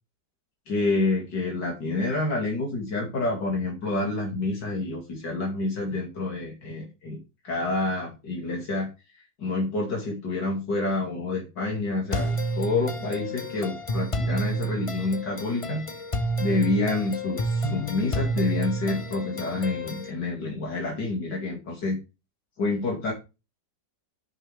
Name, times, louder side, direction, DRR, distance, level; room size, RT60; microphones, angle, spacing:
voice 1, 0.7-7.2 7.4-8.9 9.4-15.8 16.4-22.0 22.6-23.1, left 2 dB, 70° left, -2 dB, 3.1 m, -28 dB
sound 1, 12.1-20.1, right 1 dB, 40° left, 0.4 m, -30 dB
11.0 x 6.0 x 3.4 m, 0.28 s
omnidirectional pair, 1.9 m